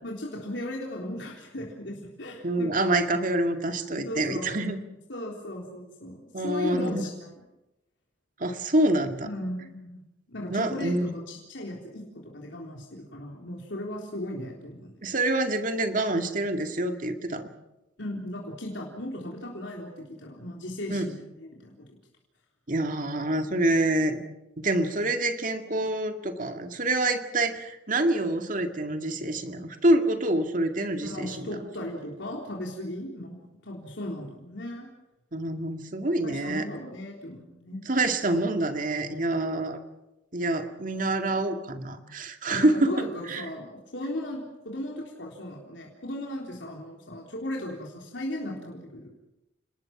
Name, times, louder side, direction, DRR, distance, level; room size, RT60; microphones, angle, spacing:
voice 1, 0.0-2.8 3.9-4.6 5.1-6.2 6.4-7.4 9.2-10.0 10.3-15.0 18.0-21.9 31.0-34.9 36.2-37.9 42.5-49.1, left 1 dB, 80° left, -2 dB, 3.8 m, -37 dB
voice 2, 2.4-4.8 6.3-7.1 8.4-9.3 10.5-11.1 15.0-17.5 20.9-21.1 22.7-24.2 24.6-31.5 35.3-36.7 37.9-39.8 40.3-42.9 43.3-43.5, right 1 dB, 45° right, 6 dB, 2.1 m, -26 dB
30.0 x 19.0 x 6.1 m, 0.95 s
head